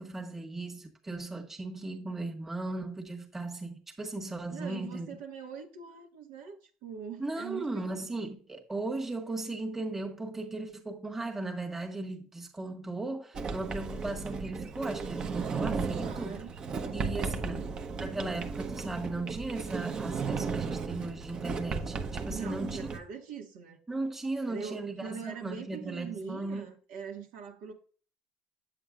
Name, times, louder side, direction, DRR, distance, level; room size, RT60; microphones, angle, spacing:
voice 1, 0.0-5.1 7.2-16.4 16.9-17.7 18.0-22.9 23.9-26.7, right 2 dB, 15° right, 1.6 m, -37 dB
voice 2, 4.5-8.0 15.9-16.5 16.8-17.7 22.3-23.8 24.5-27.7, right 6 dB, 80° right, 1.8 m, -43 dB
Sliding door, 13.3-23.0, right 5 dB, 40° right, 1.0 m, -35 dB
8.2 x 7.7 x 2.5 m
supercardioid pair, 95°, 2 cm